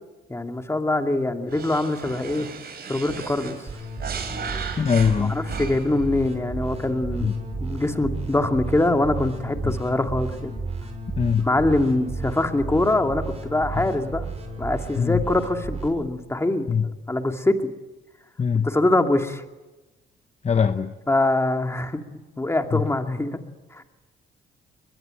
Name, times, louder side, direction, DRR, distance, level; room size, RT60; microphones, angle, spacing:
voice 1, 0.3-2.5 2.9-3.6 5.2-7.3 7.6-10.5 11.4-14.3 14.6-16.7 17.1-17.6 18.6-19.4 21.1-22.0 22.4-23.4 23.7-23.8, left 2 dB, 15° left, 5 dB, 2.5 m, -23 dB
sound 1, 1.5-6.1, right 5 dB, 55° right, 4.7 m, -36 dB
sound 2, 3.7-15.9, right 3 dB, 30° right, 6.7 m, -33 dB
voice 2, 4.8-5.4 7.2-7.4 9.6-9.8 11.2-11.5 13.7-13.8 15.0-15.2 16.7-16.9 18.4-18.7 20.4-20.9 22.7-22.9, left 6 dB, 35° left, 8 dB, 1.1 m, -22 dB
22.5 x 21.5 x 9.1 m, 1.1 s
cardioid pair, 90°, 20 cm